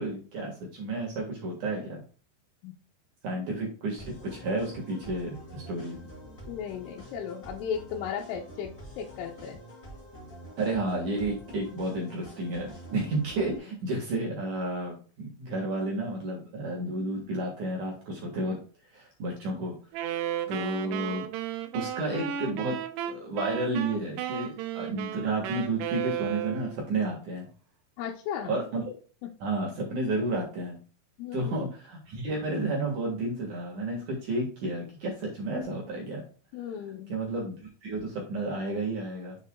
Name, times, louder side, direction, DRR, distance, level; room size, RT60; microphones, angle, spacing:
voice 1, 0.0-2.0 3.2-6.0 10.6-18.6 18.9-19.7 20.5-21.2 21.7-22.8 23.0-27.5 28.4-28.8 29.4-30.8 31.3-36.3 37.1-39.4, right 2 dB, 55° right, -1 dB, 2.3 m, -31 dB
sound 1, 4.0-13.6, equal, 25° left, 1.9 m, -47 dB
voice 2, 6.5-8.7 9.0-9.6 28.0-28.6 31.2-31.7 36.5-37.1, left 8 dB, 85° left, -1 dB, 3.4 m, -35 dB
Wind instrument woodwind instrument, 19.9-26.9, right 10 dB, 80° right, 2.4 m, -34 dB
7.5 x 6.7 x 2.2 m, 0.38 s
omnidirectional pair, 5.6 m